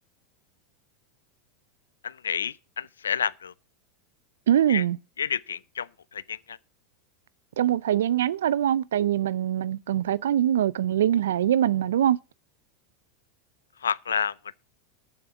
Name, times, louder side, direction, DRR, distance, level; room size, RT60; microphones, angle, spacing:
voice 1, 2.0-3.5 4.7-4.8 5.2-6.6 13.8-14.3, left 7 dB, 90° left, 0.5 m, -30 dB
voice 2, 4.5-5.0 7.6-12.2, right 11 dB, 80° right, 0.5 m, -23 dB
8.5 x 7.0 x 7.1 m
hypercardioid pair, 100°, 0 cm